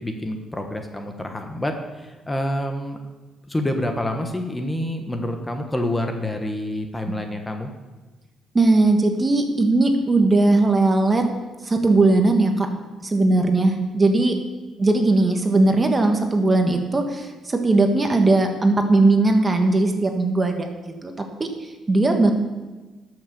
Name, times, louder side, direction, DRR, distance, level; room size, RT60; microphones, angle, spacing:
voice 1, 0.0-3.0 3.5-7.7, left 1 dB, 15° left, 5 dB, 1.2 m, -27 dB
voice 2, 8.5-11.2 11.6-12.7 13.0-14.3 14.8-20.7 21.0-22.3, right 2 dB, 25° right, 5 dB, 1.4 m, -19 dB
12.5 x 6.4 x 6.8 m, 1.2 s
cardioid pair, 90°, 0 cm